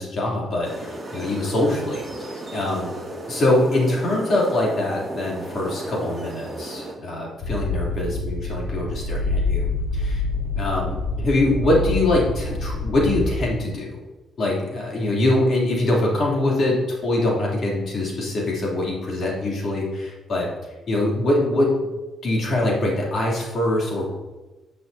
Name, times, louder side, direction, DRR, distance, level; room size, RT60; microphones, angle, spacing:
voice 1, 0.0-3.0 3.3-10.2 10.6-13.9 14.4-20.5 20.9-21.7 22.2-24.1, left 1 dB, 55° left, -3 dB, 2.9 m, -23 dB
sound 1, 0.6-6.9, right 1 dB, 15° right, 2.4 m, -34 dB
sound 2, 7.4-13.4, left 3 dB, 85° left, 2.5 m, -26 dB
10.0 x 7.4 x 2.8 m, 1.2 s
cardioid pair, 90°, 0 cm